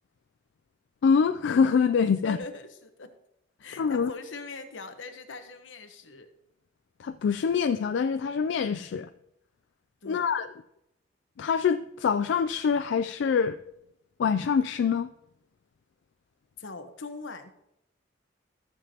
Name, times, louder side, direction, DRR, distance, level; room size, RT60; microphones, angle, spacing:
voice 1, 1.0-2.4 3.8-4.1 7.0-9.1 10.1-10.5 11.4-13.6 14.2-15.1, left 6 dB, 65° left, 10 dB, 0.3 m, -25 dB
voice 2, 2.2-3.1 3.6-6.3 10.0-10.2 16.6-17.6, left 3 dB, 85° left, 7 dB, 1.1 m, -41 dB
14.5 x 7.1 x 2.9 m, 0.83 s
head